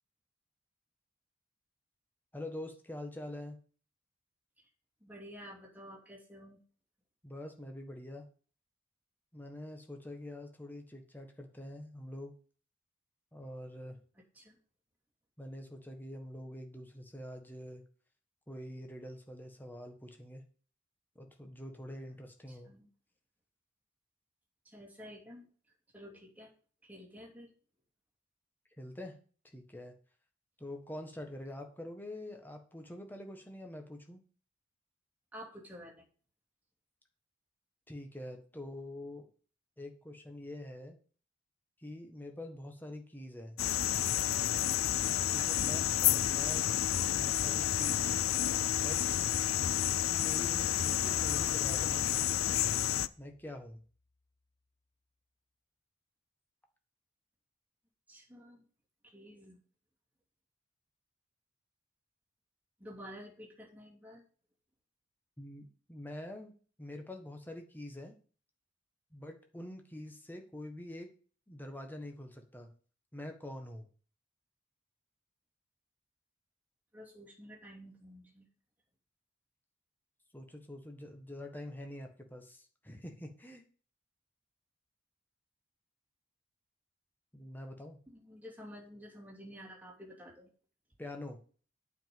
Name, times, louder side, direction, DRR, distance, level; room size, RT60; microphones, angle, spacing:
voice 1, 2.3-3.6 7.2-8.3 9.3-12.3 13.3-14.0 15.4-17.8 18.5-20.4 21.1-22.7 28.8-29.2 29.5-29.9 30.6-34.2 37.9-39.3 39.8-41.0 41.8-43.6 45.3-46.7 47.1-48.2 48.8-49.0 50.1-52.7 53.2-53.8 65.4-66.5 66.8-68.2 69.1-71.1 71.5-72.7 73.1-73.9 80.3-83.6 87.3-88.0 91.0-91.4, left 1 dB, 10° left, 4 dB, 1.5 m, -45 dB
voice 2, 5.0-6.6 14.3-14.6 22.5-22.9 24.6-25.4 25.9-26.5 26.8-27.5 35.3-36.0 45.4-45.8 58.1-58.6 59.0-59.6 62.8-64.2 76.9-78.5 88.1-90.5, equal, 10° right, -3 dB, 2.7 m, -50 dB
sound 1, 43.6-53.1, left 11 dB, 85° left, 0.5 m, -30 dB
sound 2, 51.1-53.7, left 2 dB, 60° left, 1.1 m, -52 dB
8.9 x 5.2 x 7.7 m, 0.41 s
head